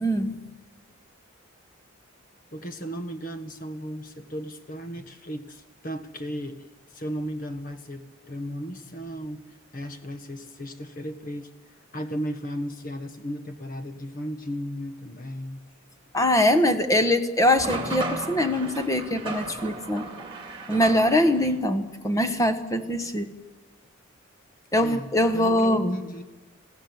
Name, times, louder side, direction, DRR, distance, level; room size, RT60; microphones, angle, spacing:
voice 1, 0.0-0.4 16.1-20.1 20.7-23.3 24.7-26.0, left 1 dB, 15° left, 9 dB, 1.2 m, -23 dB
voice 2, 2.5-9.4 9.7-15.6 24.8-25.1 25.3-26.2, equal, 40° left, 9 dB, 1.4 m, -35 dB
sound 1, 17.6-21.5, right 2 dB, 25° right, 2.4 m, -35 dB
28.0 x 15.5 x 8.0 m, 1.2 s
head